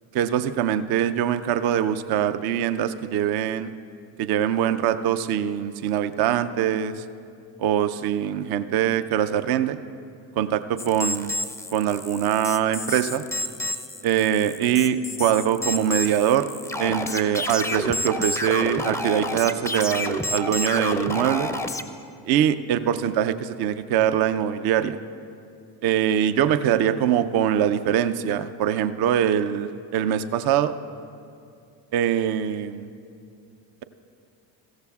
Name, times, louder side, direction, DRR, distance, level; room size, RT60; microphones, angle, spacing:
voice 1, 0.1-3.7 4.2-7.0 7.6-9.8 10.4-11.3 11.7-13.2 14.0-16.5 16.8-21.5 22.2-25.0 25.8-30.8 31.9-32.9, right 10 dB, 50° right, 12 dB, 0.6 m, -23 dB
sound 1, 10.8-21.8, left 2 dB, 5° left, 0.5 m, -30 dB
15.0 x 14.0 x 2.4 m, 2.4 s
hypercardioid pair, 60°, 50 cm